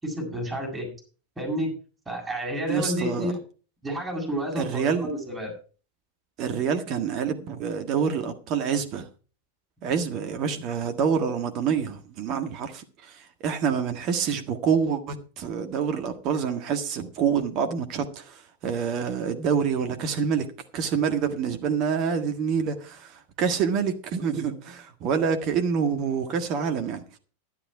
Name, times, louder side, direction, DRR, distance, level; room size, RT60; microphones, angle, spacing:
voice 1, 0.0-0.9 1.4-1.7 2.1-3.4 3.8-5.5, equal, 10° right, 7.4 m, -30 dB
voice 2, 2.7-3.3 4.5-5.1 6.4-9.1 9.8-20.5 20.7-27.0, right 7 dB, 40° right, 1.6 m, -27 dB
11.5 x 11.0 x 4.8 m
figure-of-eight pair, 90°, 0 cm